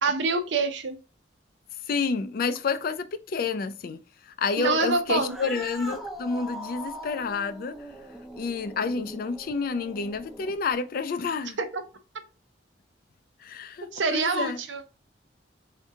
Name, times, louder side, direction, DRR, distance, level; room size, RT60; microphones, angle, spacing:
voice 1, 0.0-1.0 4.6-5.3 11.7-11.8 13.9-14.8, right 4 dB, 80° right, 0.6 m, -26 dB
voice 2, 1.9-4.0 4.4-7.7 8.4-11.6 13.4-14.6, left 4 dB, 50° left, 0.4 m, -29 dB
Cat, 5.1-10.7, equal, ahead, 0.6 m, -41 dB
3.6 x 2.7 x 3.6 m
head